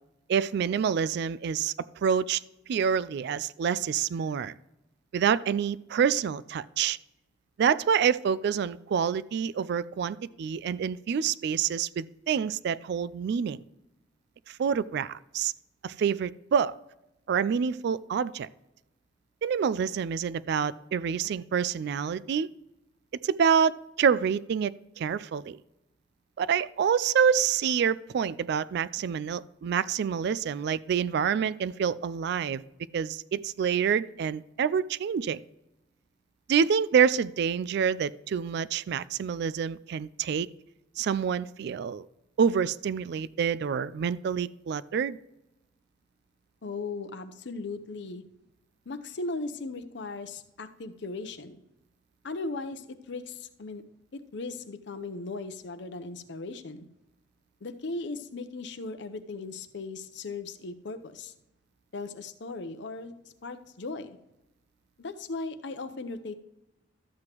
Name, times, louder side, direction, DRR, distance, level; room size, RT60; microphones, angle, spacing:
voice 1, 0.3-1.7 2.0-2.4 2.7-4.5 5.1-7.0 7.6-13.6 14.5-15.5 15.8-16.7 17.3-18.5 19.4-22.5 23.2-25.6 26.4-32.6 32.9-35.4 36.5-40.5 41.0-42.0 42.4-45.2, right 7 dB, 60° right, 18 dB, 0.3 m, -27 dB
voice 2, 46.6-48.2 48.9-51.6 52.2-53.8 54.3-56.9 57.6-61.3 61.9-63.1 63.4-64.2 65.0-66.3, left 3 dB, 70° left, 9 dB, 0.7 m, -37 dB
12.5 x 7.7 x 3.0 m, 0.90 s
head